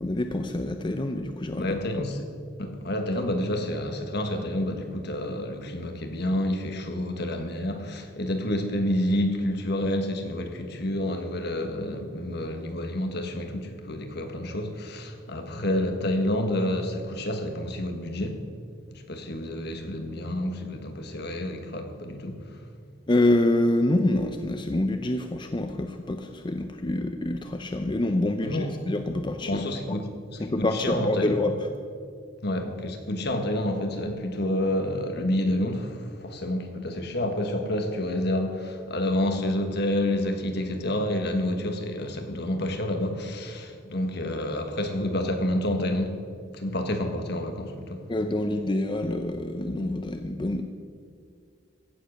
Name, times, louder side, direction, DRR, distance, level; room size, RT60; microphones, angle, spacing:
voice 1, 0.0-1.8 23.1-29.6 29.9-30.0 30.4-31.6 48.1-50.6, left 1 dB, 25° left, 6 dB, 0.5 m, -26 dB
voice 2, 1.6-2.3 2.6-18.4 19.1-22.5 28.4-28.8 29.4-31.4 32.4-46.2 46.5-48.0, left 1 dB, 60° left, 5 dB, 1.5 m, -29 dB
15.5 x 7.5 x 6.5 m, 2.2 s
head